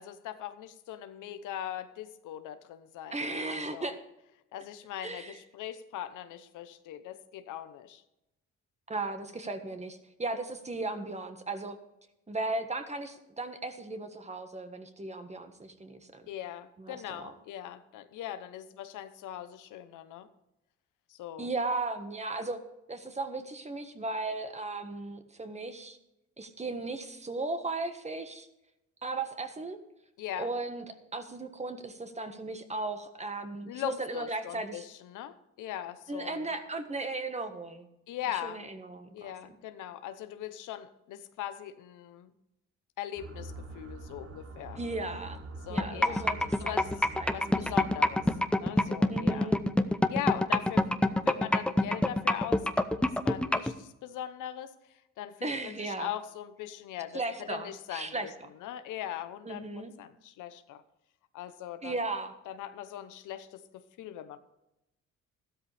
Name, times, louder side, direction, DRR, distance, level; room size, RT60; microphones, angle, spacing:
voice 1, 0.0-3.9 4.5-8.0 16.3-20.3 21.1-21.5 30.2-30.5 33.7-36.5 38.1-38.7 39.1-42.3 43.0-44.8 45.7-46.3 46.6-47.1 47.3-48.3 48.6-49.5 50.1-58.3 58.6-60.8 61.3-62.0 62.5-64.4, left 11 dB, 90° left, 10 dB, 1.0 m, -40 dB
voice 2, 3.1-4.0 5.0-5.4 8.9-11.8 12.3-16.2 16.8-17.3 21.4-22.6 22.9-26.0 26.4-28.5 29.0-29.8 30.4-34.8 36.1-37.9 38.3-39.3 44.8-45.4 45.7-47.7 49.1-49.6 55.4-56.1 57.1-58.3 59.4-59.9 61.8-62.3, right 2 dB, 20° right, 7 dB, 1.6 m, -36 dB
sound 1, 43.2-48.4, right 2 dB, 50° right, 1.6 m, -44 dB
sound 2, 45.8-53.7, left 1 dB, 5° left, 0.7 m, -25 dB
13.5 x 12.5 x 3.4 m, 0.90 s
cardioid pair, 90°, 30 cm